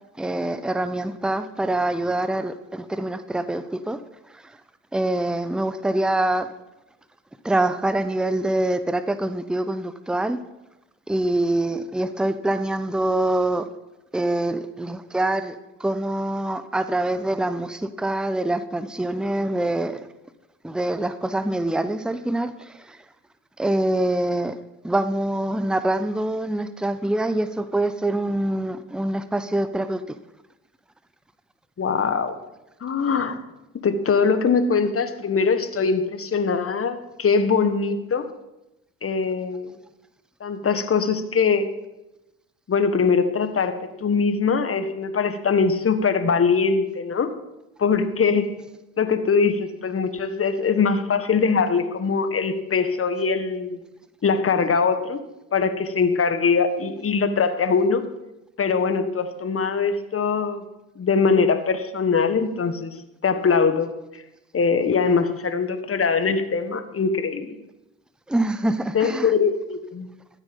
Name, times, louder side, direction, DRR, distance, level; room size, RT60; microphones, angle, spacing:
voice 1, 0.2-4.0 4.9-6.5 7.4-10.4 11.1-13.7 14.1-15.5 15.8-20.0 20.6-22.5 22.9-23.0 23.6-24.5 24.8-30.0 68.3-69.3, right 1 dB, ahead, 12 dB, 0.8 m, -25 dB
voice 2, 31.8-32.3 32.8-33.4 33.8-38.3 39.0-39.7 40.4-41.7 42.7-43.7 44.0-47.3 47.8-48.5 49.0-53.8 54.2-55.2 55.5-58.0 58.6-60.6 60.9-62.9 63.2-63.9 64.5-67.5 68.9-70.1, left 5 dB, 35° left, 10 dB, 1.5 m, -22 dB
13.5 x 8.1 x 5.4 m, 0.96 s
hypercardioid pair, 60°, 39 cm